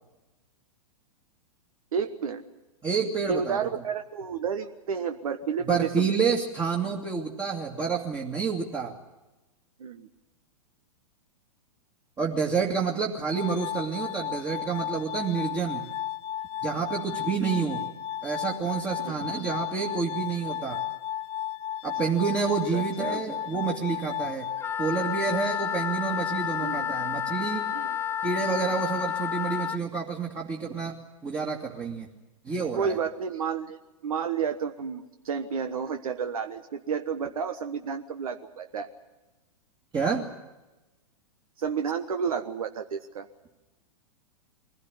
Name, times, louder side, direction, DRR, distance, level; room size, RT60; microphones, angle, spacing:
voice 1, 1.9-2.4 3.3-6.2 9.8-10.1 19.0-19.2 22.7-23.3 26.6-26.9 27.7-28.0 32.7-38.9 41.6-43.3, right 6 dB, 70° right, 7 dB, 1.3 m, -31 dB
voice 2, 2.8-3.6 5.7-8.9 12.2-15.8 16.6-17.8 18.2-20.8 21.8-24.5 24.8-27.6 28.2-31.0 31.2-32.1 32.5-33.0 39.9-40.3, right 5 dB, 20° right, -2 dB, 2.3 m, -28 dB
Glass, 13.3-25.3, left 11 dB, 30° left, 1.5 m, -34 dB
Wind instrument woodwind instrument, 24.6-29.8, left 9 dB, 15° left, 0.7 m, -30 dB
22.5 x 16.0 x 9.9 m, 1.1 s
hypercardioid pair, 110°, 19 cm